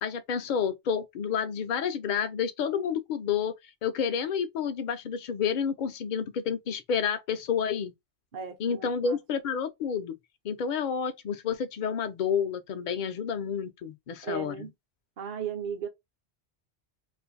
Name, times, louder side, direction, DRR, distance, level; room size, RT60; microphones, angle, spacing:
voice 1, 0.0-3.5 3.8-7.9 8.6-10.2 10.4-14.7, left 7 dB, 55° left, 0.6 m, -30 dB
voice 2, 8.3-9.2 14.2-14.7 15.2-15.9, right 6 dB, 55° right, 0.8 m, -36 dB
2.5 x 2.4 x 3.9 m
omnidirectional pair, 1.1 m